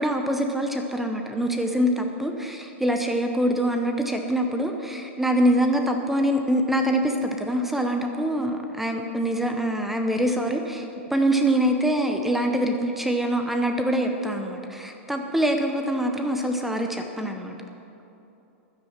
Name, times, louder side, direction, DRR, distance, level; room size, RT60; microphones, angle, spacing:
voice 1, 0.0-17.5, right 1 dB, 5° right, 4 dB, 0.7 m, -24 dB
11.0 x 10.0 x 7.2 m, 2.9 s
supercardioid pair, 150°, 7 cm